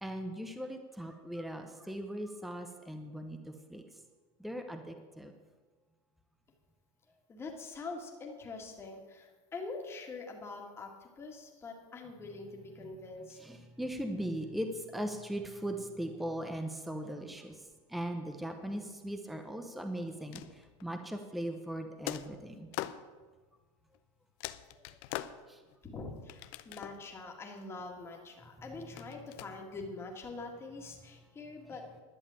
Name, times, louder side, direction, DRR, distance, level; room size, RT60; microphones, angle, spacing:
voice 1, 0.0-3.4 3.7-3.8 4.4-5.3 13.4-17.5 17.9-20.4 20.8-22.7 25.5-25.6, right 1 dB, ahead, 6 dB, 0.7 m, -39 dB
voice 2, 7.3-13.4 25.8-31.8, left 3 dB, 15° left, 1 dB, 1.8 m, -44 dB
sound 1, 20.1-21.0 22.1-23.0 23.9-24.0 24.4-25.8 26.3-27.1 29.0-29.5, left 15 dB, 50° left, 0.6 m, -42 dB
11.5 x 7.3 x 8.6 m, 1.3 s
supercardioid pair, 155°, 17 cm